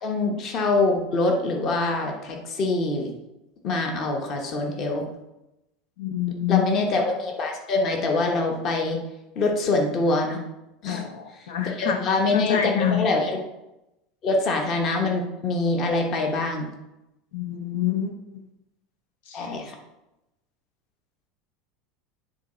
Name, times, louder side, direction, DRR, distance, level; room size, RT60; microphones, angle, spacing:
voice 1, 0.0-3.1 3.6-5.1 6.5-9.0 9.3-10.4 10.8-11.1 11.6-13.4 14.2-16.7 19.3-19.8, left 3 dB, 35° left, 2 dB, 1.1 m, -24 dB
voice 2, 6.0-6.7 10.9-12.0 12.3-13.0 17.3-18.2 19.3-19.5, left 10 dB, 75° left, 5 dB, 0.9 m, -26 dB
9.1 x 3.8 x 4.3 m, 0.93 s
supercardioid pair, 160°, 0 cm